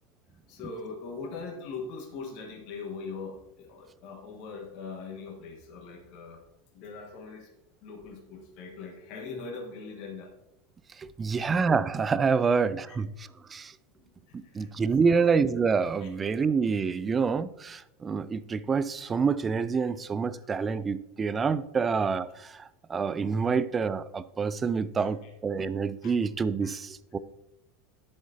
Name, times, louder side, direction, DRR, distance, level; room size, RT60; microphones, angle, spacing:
voice 1, 0.5-6.4 6.7-7.5 7.8-10.3 11.4-11.5 12.9-13.0 14.0-14.7 15.0-15.3 16.0-16.1 25.0-25.3 26.0-26.1 26.6-26.8, left 4 dB, 50° left, 1.4 m, -41 dB
voice 2, 10.9-13.7 14.3-27.2, right 5 dB, 25° right, 0.4 m, -27 dB
10.0 x 7.5 x 2.8 m
figure-of-eight pair, 80°, 0 cm